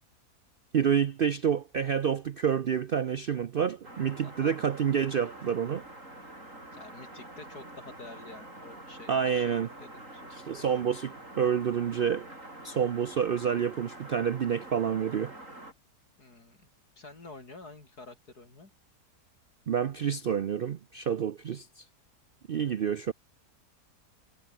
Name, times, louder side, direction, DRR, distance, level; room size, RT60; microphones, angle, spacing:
voice 1, 0.7-5.8 9.1-9.7 10.3-12.3 12.6-15.3 19.7-21.8 22.5-23.1, right 8 dB, 85° right, 0.4 m, -28 dB
sound 1, 3.8-15.7, right 1 dB, 50° right, 8.5 m, -47 dB
voice 2, 4.2-4.6 6.7-10.4 16.2-16.6 17.0-18.7, left 3 dB, 70° left, 5.2 m, -49 dB
omnidirectional pair, 1.7 m